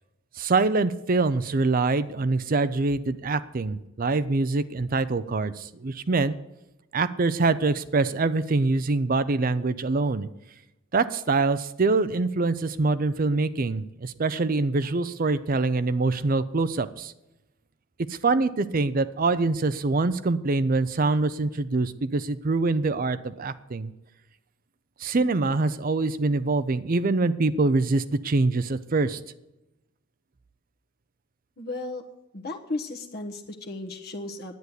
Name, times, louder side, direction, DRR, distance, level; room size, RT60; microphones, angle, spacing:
voice 1, 0.4-6.3 6.9-10.3 10.9-17.1 18.1-23.9 25.0-29.2, right 3 dB, 45° right, 14 dB, 0.6 m, -24 dB
voice 2, 31.6-32.0 32.3-34.6, left 2 dB, 50° left, 1 dB, 1.2 m, -35 dB
10.5 x 9.4 x 8.1 m, 0.92 s
head